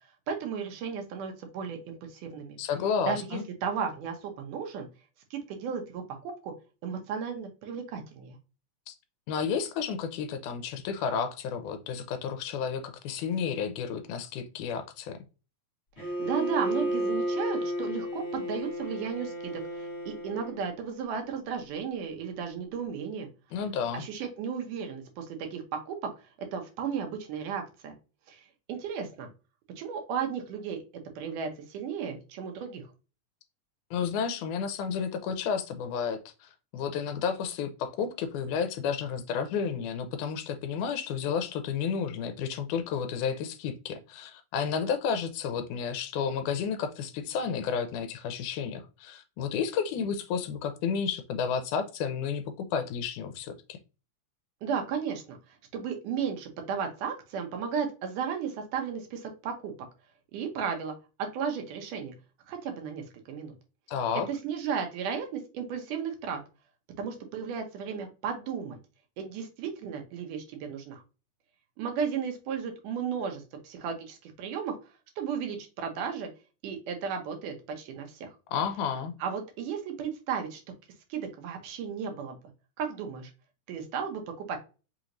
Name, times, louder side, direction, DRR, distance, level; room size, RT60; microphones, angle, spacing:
voice 1, 0.3-2.6 3.1-4.9 5.3-6.5 6.8-8.4 16.0-23.3 23.9-26.1 26.4-28.0 28.3-29.3 29.8-30.8 31.2-32.9 54.6-59.7 60.3-62.1 62.5-63.5 64.3-66.4 67.0-68.8 69.2-71.0 71.8-74.7 75.2-76.3 76.6-78.3 79.2-80.6 81.1-82.4 82.8-83.3 83.7-84.6, right 6 dB, 85° right, 3 dB, 2.5 m, -34 dB
voice 2, 2.6-3.4 8.9-9.0 9.3-15.2 23.5-24.1 33.9-53.8 63.9-64.3 78.5-79.1, left 6 dB, 80° left, 9 dB, 2.0 m, -31 dB
Bowed string instrument, 16.0-20.7, right 1 dB, 35° left, 1.1 m, -32 dB
5.5 x 3.0 x 2.5 m, 0.32 s
omnidirectional pair, 3.6 m